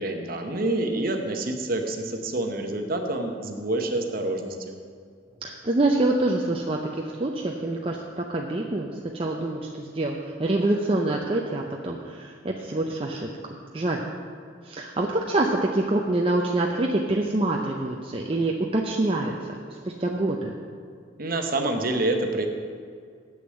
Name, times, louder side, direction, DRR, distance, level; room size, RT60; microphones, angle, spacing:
voice 1, 0.0-4.7 21.2-22.5, right 2 dB, 50° right, 4 dB, 1.0 m, -27 dB
voice 2, 5.4-14.0 14.6-20.5, right 2 dB, 30° right, 0 dB, 0.6 m, -26 dB
8.0 x 6.7 x 7.7 m, 2.1 s
head